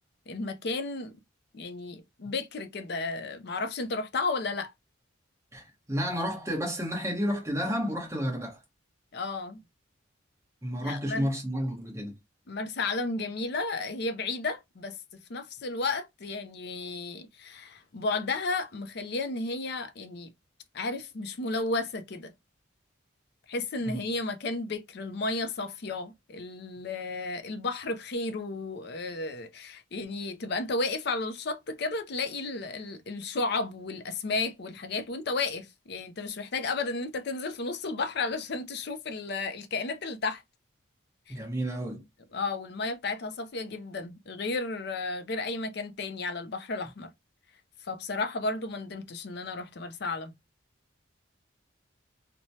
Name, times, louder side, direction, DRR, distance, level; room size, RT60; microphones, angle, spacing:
voice 1, 0.3-1.1 1.5-4.7 9.1-9.6 10.8-11.3 12.5-15.0 15.3-20.3 20.7-22.3 23.5-40.4 41.3-41.4 42.3-47.1 47.8-50.3, left 3 dB, 50° left, 0.5 m, -33 dB
voice 2, 5.5-8.6 10.6-12.2 23.8-24.0 41.3-42.0, equal, 15° right, 1.0 m, -31 dB
3.0 x 2.1 x 2.7 m
head